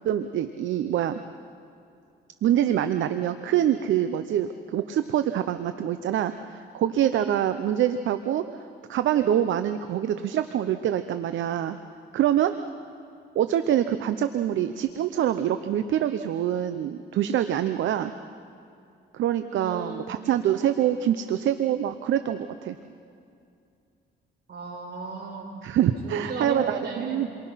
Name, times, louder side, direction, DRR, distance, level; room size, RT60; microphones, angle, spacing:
voice 1, 0.0-1.2 2.4-8.4 8.9-11.8 12.1-12.6 13.3-18.1 19.1-22.8 25.6-27.5, right 10 dB, 75° right, 9 dB, 0.9 m, -25 dB
voice 2, 19.5-20.0 24.5-25.5 26.0-27.2, right 3 dB, 55° right, -2 dB, 7.7 m, -35 dB
29.0 x 23.5 x 5.8 m, 2.5 s
cardioid pair, 90°, 20 cm